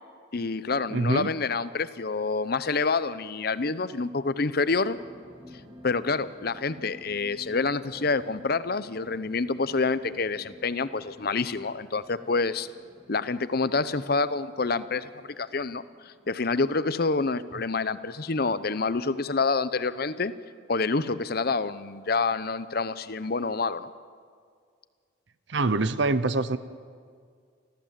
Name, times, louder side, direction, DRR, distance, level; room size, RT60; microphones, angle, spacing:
voice 1, 0.3-5.0 5.8-12.7 13.1-15.1 15.4-20.3 20.7-23.9, left 4 dB, 50° left, 14 dB, 0.7 m, -27 dB
voice 2, 0.9-1.3 25.5-26.6, right 3 dB, 65° right, 14 dB, 0.8 m, -25 dB
sound 1, 4.7-19.3 19.7-19.8, left 1 dB, 25° right, 2.4 m, -52 dB
30.0 x 14.0 x 7.5 m, 2.1 s
head